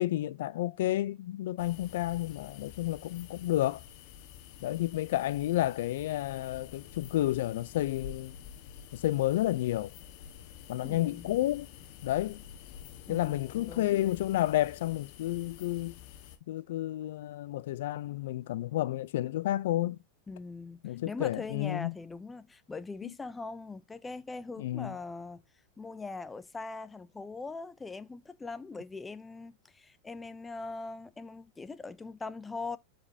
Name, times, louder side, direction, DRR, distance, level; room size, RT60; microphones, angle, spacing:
voice 1, 0.0-3.8 4.6-8.3 8.9-9.9 10.7-11.7 12.0-12.4 13.1-15.9 16.5-20.0 20.8-21.9 24.6-24.9, left 14 dB, 75° left, 0.4 m, -31 dB
sound 1, 1.6-16.4, left 9 dB, 50° left, 1.3 m, -49 dB
voice 2, 10.8-11.4 13.1-14.0 20.3-25.4 25.8-32.8, left 3 dB, 10° left, 0.5 m, -41 dB
7.4 x 5.1 x 2.7 m
supercardioid pair, 145°, 0 cm